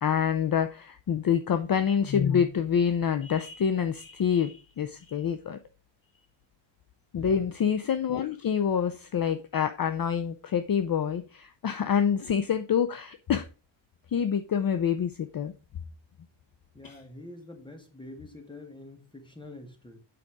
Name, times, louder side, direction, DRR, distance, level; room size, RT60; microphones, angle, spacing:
voice 1, 0.0-5.6 7.1-13.4 14.1-15.5 16.8-16.9, left 7 dB, 50° left, 9 dB, 0.6 m, -26 dB
voice 2, 7.1-7.5 16.7-20.0, left 2 dB, 10° left, 3 dB, 2.1 m, -46 dB
8.4 x 5.0 x 4.8 m, 0.32 s
wide cardioid pair, 140°, 46 cm